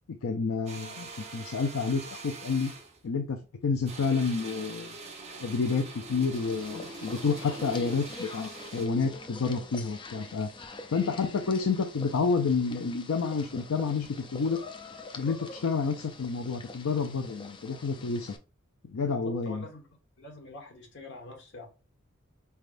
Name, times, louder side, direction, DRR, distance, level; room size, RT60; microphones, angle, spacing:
voice 1, 0.1-2.7 3.0-5.0 5.4-10.5 10.9-14.6 15.2-18.3 18.8-19.6, left 4 dB, 75° left, 0.5 m, -29 dB
sound 1, 0.7-3.0 3.8-8.9, right 3 dB, 30° right, 0.9 m, -43 dB
sound 2, 6.3-18.4, left 3 dB, 25° left, 0.5 m, -45 dB
voice 2, 19.1-19.9 20.2-21.7, left 2 dB, 60° left, 1.3 m, -45 dB
4.3 x 3.4 x 2.5 m
head